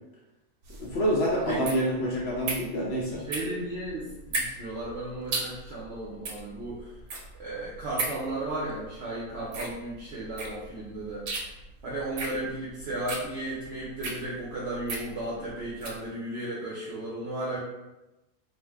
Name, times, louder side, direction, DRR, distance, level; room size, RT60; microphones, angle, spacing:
sound 1, 0.6-16.0, right 3 dB, 80° right, 1.1 m, -37 dB
voice 1, 0.8-3.2, equal, 65° left, -4 dB, 0.6 m, -27 dB
voice 2, 3.3-6.9 7.4-11.3 11.8-17.6, right 1 dB, 60° right, -7 dB, 0.8 m, -34 dB
2.5 x 2.1 x 3.4 m, 1.0 s
omnidirectional pair, 1.5 m